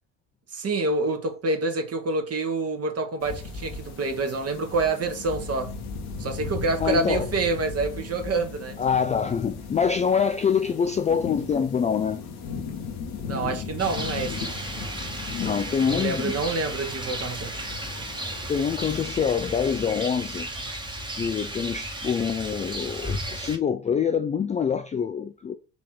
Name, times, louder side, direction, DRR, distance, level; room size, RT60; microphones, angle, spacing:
voice 1, 0.5-5.7 6.2-8.8 13.2-15.1 15.9-17.5, right 3 dB, 35° right, 1.3 m, -27 dB
sound 1, 3.2-19.0, left 5 dB, 65° left, 1.2 m, -37 dB
voice 2, 6.8-7.3 8.8-12.2 15.4-16.3 18.5-20.5 21.1-25.5, left 7 dB, 20° left, 0.3 m, -25 dB
Rain, 13.8-23.6, right 1 dB, 10° right, 1.3 m, -34 dB
4.3 x 2.9 x 4.2 m
hypercardioid pair, 55°, 41 cm